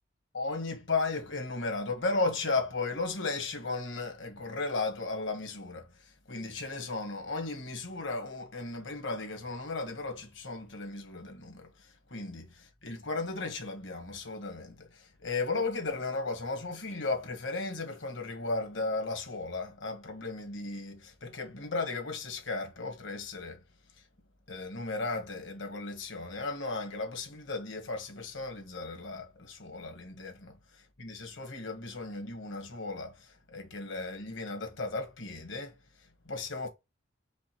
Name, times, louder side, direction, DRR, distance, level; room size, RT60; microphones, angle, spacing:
voice 1, 0.3-12.4 12.8-23.6 24.0-24.1 24.5-30.3 31.0-36.7, left 3 dB, 70° left, 1.6 m, -35 dB
5.2 x 2.3 x 4.5 m
head